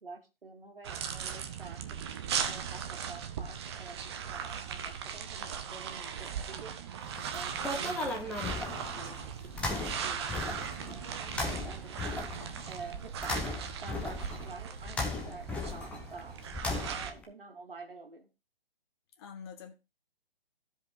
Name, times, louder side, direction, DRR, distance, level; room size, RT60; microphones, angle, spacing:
voice 1, 0.0-2.0 2.5-6.8 7.3-9.3 9.6-12.3 12.7-16.4 16.9-18.3, right 3 dB, 70° right, 2.2 m, -49 dB
sound 1, 0.8-17.1, right 7 dB, 30° right, 0.9 m, -38 dB
sound 2, 7.0-17.2, left 2 dB, 5° left, 0.7 m, -37 dB
voice 2, 7.7-8.2 19.2-19.7, left 6 dB, 25° left, 1.3 m, -47 dB
14.5 x 5.2 x 3.7 m
figure-of-eight pair, 135°, 29 cm